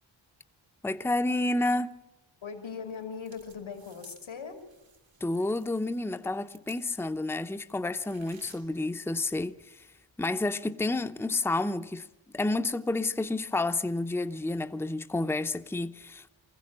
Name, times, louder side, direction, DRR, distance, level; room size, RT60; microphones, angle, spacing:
voice 1, 0.8-1.9 5.2-9.9 10.2-12.1 12.3-16.3, left 2 dB, 5° left, 0.7 m, -30 dB
voice 2, 2.4-4.6, left 6 dB, 85° left, 2.8 m, -39 dB
sound 1, 2.9-7.2 7.5-8.6, right 5 dB, 90° right, 3.0 m, -57 dB
23.5 x 15.5 x 8.7 m
wide cardioid pair, 75°, 46 cm